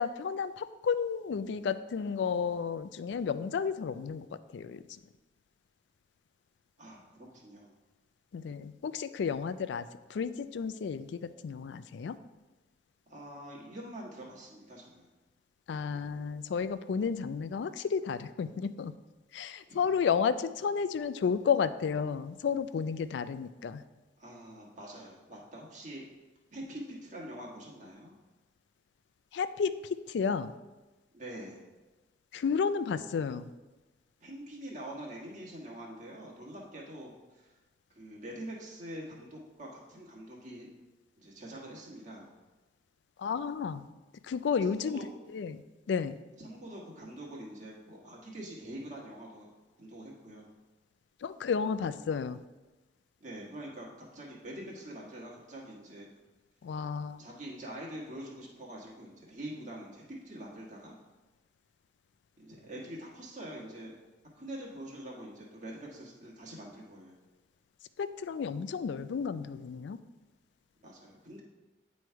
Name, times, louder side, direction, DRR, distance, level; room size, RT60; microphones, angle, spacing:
voice 1, 0.0-4.3 4.5-5.0 8.3-12.2 15.7-18.9 19.3-23.8 29.3-30.5 32.3-33.5 43.2-43.9 44.2-45.0 45.3-45.6 45.9-46.2 51.2-52.4 56.6-57.2 68.0-70.0, left 6 dB, 65° left, 12 dB, 0.3 m, -32 dB
voice 2, 6.8-7.7 13.1-15.1 19.7-19.9 24.2-26.0 26.5-28.1 31.1-31.6 34.2-37.6 37.9-40.7 41.2-42.3 44.6-45.1 46.4-49.5 49.8-50.5 53.2-53.9 54.1-56.1 57.2-61.0 62.4-63.9 64.3-67.2 70.8-71.4, right 1 dB, 40° right, -3 dB, 1.4 m, -45 dB
9.3 x 3.1 x 4.5 m, 1.1 s
head